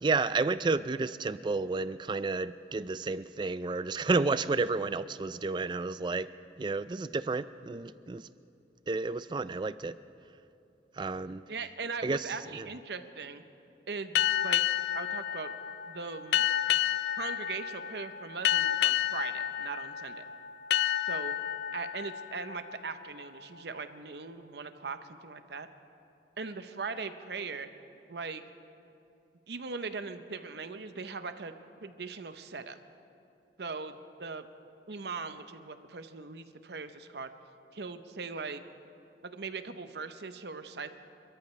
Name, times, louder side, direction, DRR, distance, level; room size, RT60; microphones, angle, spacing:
voice 1, 0.0-6.3 6.6-8.2 8.9-9.9 11.0-11.4 12.0-12.7, right 3 dB, 25° right, 14 dB, 0.3 m, -31 dB
voice 2, 11.5-13.4 13.9-14.6 14.9-15.6 15.9-16.4 17.2-20.2 21.0-21.4 21.7-25.7 26.4-27.7 28.1-28.4 29.5-31.5 31.8-32.8 33.6-34.5 34.9-37.3 37.7-38.6 39.2-41.0, right 4 dB, 65° right, 9 dB, 0.7 m, -40 dB
sound 1, 14.1-23.4, left 11 dB, 65° left, 0.3 m, -30 dB
27.5 x 14.0 x 3.2 m, 2.7 s
head